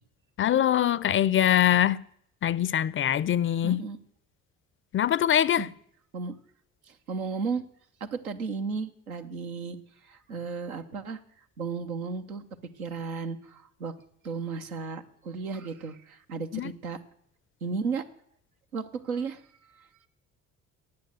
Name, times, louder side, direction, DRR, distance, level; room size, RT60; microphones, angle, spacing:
voice 1, 0.4-2.0 2.4-3.8 4.9-5.7 16.5-16.7, left 11 dB, 30° left, 0.4 m, -23 dB
voice 2, 3.6-4.0 5.6-5.7 6.1-6.3 6.8-7.6 8.0-9.8 10.0-11.2 11.6-12.4 12.8-13.9 14.2-17.0 17.6-18.0 18.7-20.1, right 5 dB, 90° right, 0.8 m, -34 dB
9.6 x 8.6 x 7.8 m
hypercardioid pair, 50°, 41 cm